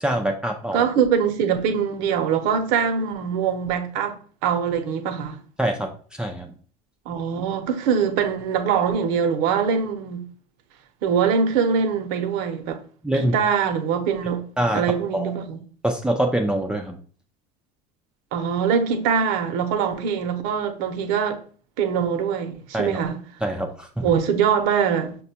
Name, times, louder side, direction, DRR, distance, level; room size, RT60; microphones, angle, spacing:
voice 1, 0.0-0.9 5.6-5.9 6.2-6.5 13.0-13.4 14.6-14.8 15.1-15.3 15.8-17.0 22.7-23.0 23.4-24.1, right 1 dB, 5° right, 0.4 m, -24 dB
voice 2, 0.7-4.2 4.4-5.4 7.1-10.2 11.0-12.8 13.1-14.4 14.7-15.6 18.3-21.4 21.8-23.2 24.0-25.1, right 7 dB, 70° right, 0.7 m, -23 dB
5.8 x 2.2 x 2.8 m
supercardioid pair, 125°, 17 cm